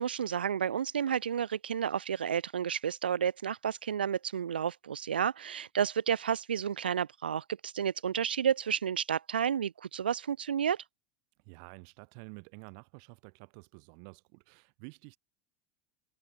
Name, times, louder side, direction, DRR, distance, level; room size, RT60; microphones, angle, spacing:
voice 1, 0.0-10.8, right 8 dB, 85° right, 0.3 m, -31 dB
voice 2, 11.5-15.2, right 40 dB or more, 60° right, 2.0 m, -50 dB
hypercardioid pair, 80°, 5 cm